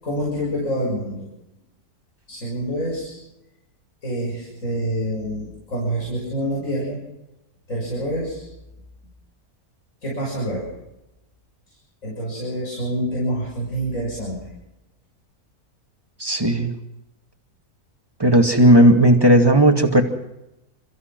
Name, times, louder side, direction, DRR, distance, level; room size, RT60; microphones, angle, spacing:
voice 1, 0.0-1.3 2.3-3.2 4.0-7.0 7.7-8.5 10.0-10.7 12.0-14.5, equal, 55° left, -5 dB, 7.2 m, -27 dB
voice 2, 16.2-16.7 18.2-20.0, right 1 dB, 15° right, 3 dB, 2.3 m, -14 dB
29.0 x 15.5 x 6.1 m, 0.92 s
omnidirectional pair, 1.6 m